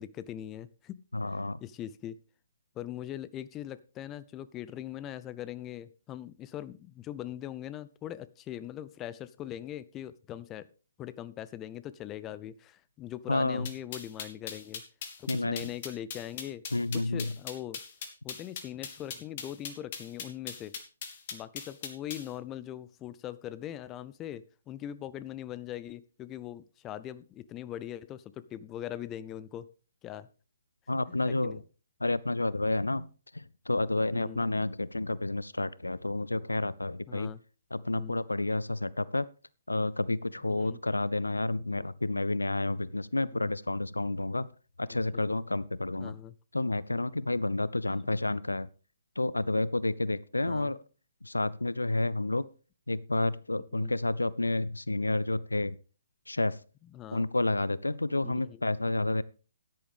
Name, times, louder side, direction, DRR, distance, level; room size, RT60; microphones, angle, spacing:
voice 1, 0.0-1.0 1.6-2.2 2.8-10.7 11.0-14.8 15.2-16.6 16.9-17.8 18.2-20.8 21.3-29.7 30.0-30.3 31.3-31.6 34.1-34.4 37.1-37.4 37.9-38.2 40.5-40.8 43.4-43.5 45.1-45.3 46.0-46.3 50.5-50.7 53.7-53.9 56.9-57.3 58.2-58.6, left 12 dB, 20° left, 17 dB, 0.5 m, -41 dB
voice 2, 1.1-1.6 13.3-13.7 15.3-15.7 16.7-17.3 30.9-31.6 32.0-37.3 37.7-39.3 39.7-44.5 44.8-46.1 46.5-48.7 49.2-50.8 51.2-52.5 52.9-55.8 56.3-56.6 57.1-59.2, left 2 dB, 80° left, 20 dB, 0.5 m, -30 dB
sound 1, 13.7-22.3, left 7 dB, 40° left, 2.1 m, -40 dB
13.5 x 10.5 x 3.5 m, 0.36 s
figure-of-eight pair, 130°, 0 cm